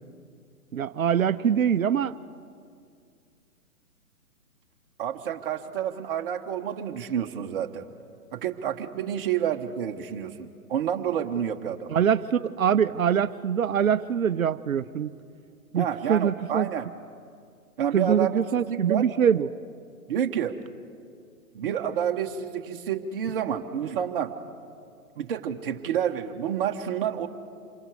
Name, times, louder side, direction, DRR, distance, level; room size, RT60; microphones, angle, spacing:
voice 1, 0.7-2.2 11.9-15.1 15.7-16.7 17.9-19.5, right 8 dB, 65° right, 15 dB, 0.8 m, -24 dB
voice 2, 5.0-7.9 8.3-11.9 15.7-16.9 17.8-19.1 20.1-20.6 21.5-24.3 25.2-27.3, right 9 dB, 40° right, 5 dB, 1.4 m, -29 dB
28.0 x 24.0 x 4.9 m, 2.2 s
figure-of-eight pair, 135°, 44 cm